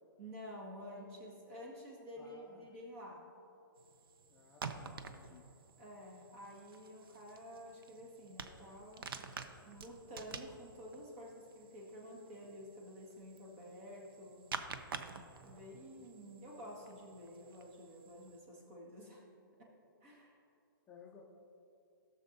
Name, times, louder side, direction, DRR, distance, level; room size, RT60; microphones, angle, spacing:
voice 1, 0.2-3.2 5.8-9.3 9.6-14.4 15.4-19.3 19.6-19.7 20.0-20.4, equal, 40° right, -2 dB, 1.9 m, -51 dB
voice 2, 2.2-2.7 4.3-5.5 20.9-21.2, left 5 dB, 15° left, -1 dB, 0.5 m, -58 dB
sound 1, 3.8-18.4, right 5 dB, 85° right, 0.6 m, -50 dB
14.5 x 6.7 x 2.7 m, 2.8 s
hypercardioid pair, 155°, 12 cm